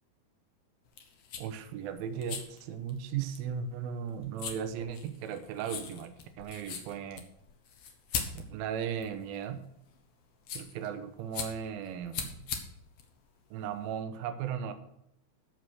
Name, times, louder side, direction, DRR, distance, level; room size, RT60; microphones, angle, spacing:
sound 1, 0.8-14.0, left 6 dB, 80° left, 1.4 m, -42 dB
voice 1, 1.4-7.2 8.3-9.6 10.5-12.5 13.5-14.7, right 8 dB, 75° right, 9 dB, 2.5 m, -37 dB
13.5 x 4.9 x 6.3 m, 0.78 s
omnidirectional pair, 4.8 m